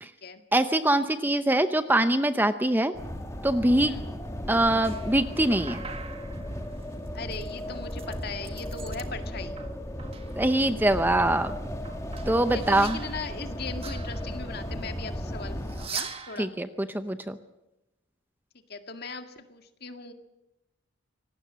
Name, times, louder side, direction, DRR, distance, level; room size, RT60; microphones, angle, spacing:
voice 1, 0.5-2.9 3.4-4.0 4.5-5.8 10.4-11.5 12.3-13.0 16.4-17.4, right 1 dB, 10° right, 10 dB, 0.7 m, -23 dB
sound 1, 2.9-15.9, equal, 15° left, 1.7 m, -35 dB
sound 2, 4.6-9.1 9.4-10.7 11.1-14.7 15.6-16.4, right 6 dB, 30° right, 1.7 m, -43 dB
voice 2, 7.1-9.6 12.5-16.5 18.7-20.1, left 4 dB, 50° left, 7 dB, 2.0 m, -39 dB
25.5 x 19.0 x 7.6 m, 0.96 s
head